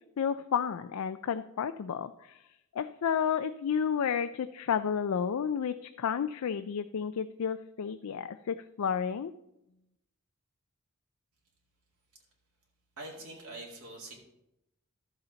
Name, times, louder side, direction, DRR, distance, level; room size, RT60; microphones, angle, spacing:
voice 1, 0.2-2.1 2.8-9.3, left 7 dB, 70° left, 10 dB, 0.4 m, -31 dB
voice 2, 13.0-14.1, right 2 dB, 70° right, -2 dB, 2.2 m, -44 dB
12.5 x 6.9 x 4.0 m, 0.87 s
head